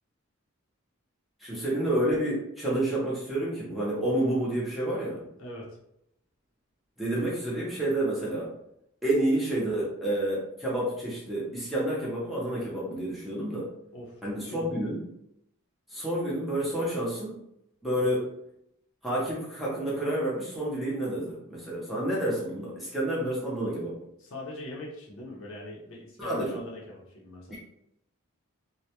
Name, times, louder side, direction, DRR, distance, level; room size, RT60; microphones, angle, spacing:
voice 1, 1.4-5.2 7.0-8.5 9.0-13.7 14.2-15.0 15.9-17.3 17.8-18.3 19.0-24.0 26.2-26.6 27.5-27.6, right 1 dB, ahead, -7 dB, 0.6 m, -29 dB
voice 2, 5.4-5.8 13.9-14.8 24.2-27.6, left 1 dB, 65° left, -3 dB, 0.6 m, -41 dB
2.2 x 2.1 x 2.8 m, 0.78 s
head